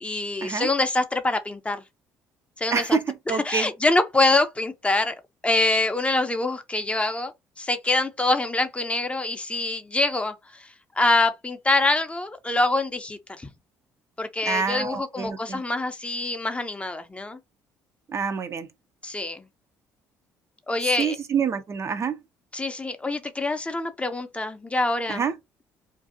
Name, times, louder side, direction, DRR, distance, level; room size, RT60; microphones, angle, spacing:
voice 1, 0.0-1.8 2.6-3.0 3.3-5.1 5.4-7.3 7.6-13.5 14.2-17.4 19.0-19.4 20.7-21.2 22.5-25.2, left 2 dB, 15° left, 0.5 m, -25 dB
voice 2, 2.7-3.7 14.5-15.6 18.1-18.7 21.0-22.2 25.1-25.4, right 6 dB, 40° right, 0.4 m, -27 dB
2.5 x 2.3 x 2.6 m
hypercardioid pair, 60°, 7 cm